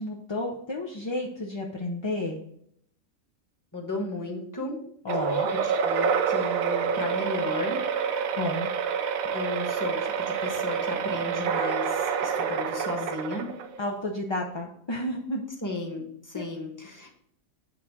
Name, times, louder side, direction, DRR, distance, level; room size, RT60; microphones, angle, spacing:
voice 1, 0.0-2.4 5.0-5.5 8.4-8.7 13.8-15.5 16.3-16.5, left 1 dB, 30° left, -1 dB, 0.5 m, -31 dB
voice 2, 3.7-4.8 5.5-7.8 9.3-13.5 15.6-17.1, left 2 dB, 15° left, 1 dB, 1.3 m, -34 dB
sound 1, 5.1-13.9, right 6 dB, 85° right, 1.1 m, -27 dB
8.1 x 3.6 x 5.8 m, 0.69 s
omnidirectional pair, 1.4 m